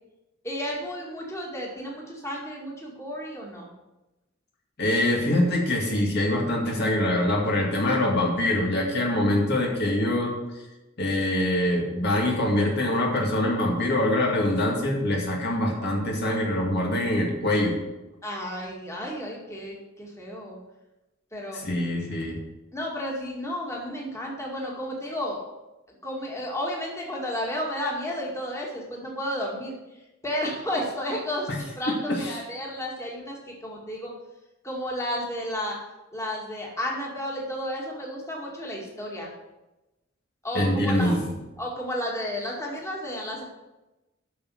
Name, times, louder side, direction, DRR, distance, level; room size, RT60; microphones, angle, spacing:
voice 1, 0.4-3.7 18.2-20.6 21.3-21.6 22.7-25.4 26.0-29.7 30.2-31.5 31.8-34.1 34.6-35.8 36.1-39.3 40.4-41.1 41.6-43.4, equal, 15° left, -2 dB, 2.1 m, -32 dB
voice 2, 4.8-10.4 11.0-17.8 21.5-22.4 31.5-31.6 32.1-32.4 40.5-41.3, left 1 dB, 60° left, -1 dB, 2.2 m, -24 dB
8.4 x 6.3 x 7.8 m, 1.0 s
head